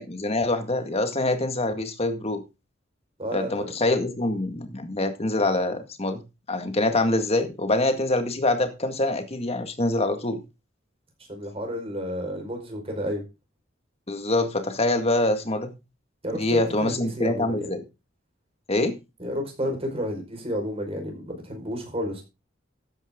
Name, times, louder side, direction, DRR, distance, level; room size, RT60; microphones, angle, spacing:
voice 1, 0.0-2.4 3.3-6.2 6.5-10.4 14.1-15.7 16.4-17.8 18.7-19.0, left 2 dB, 30° left, 1.9 m, -25 dB
voice 2, 3.2-3.7 11.3-13.2 16.2-17.7 19.2-22.2, equal, 30° right, 5.0 m, -31 dB
13.5 x 10.0 x 3.8 m
head